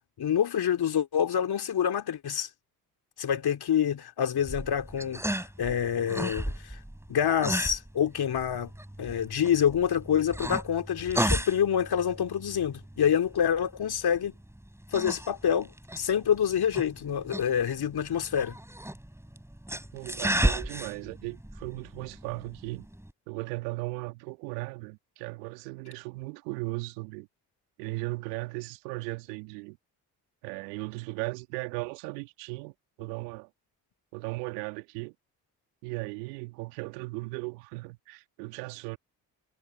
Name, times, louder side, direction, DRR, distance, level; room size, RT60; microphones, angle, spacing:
voice 1, 0.2-2.5 3.2-6.8 7.1-8.7 9.0-14.3 14.9-18.6, left 8 dB, 50° left, 3.0 m, -27 dB
sound 1, 4.4-23.1, right 1 dB, 5° right, 5.2 m, -35 dB
voice 2, 19.9-22.9 23.3-27.3 27.8-29.8 30.4-32.7 33.0-33.5 34.1-35.1 35.8-39.0, right 27 dB, 80° right, 2.4 m, -37 dB
hypercardioid pair, 40°, 48 cm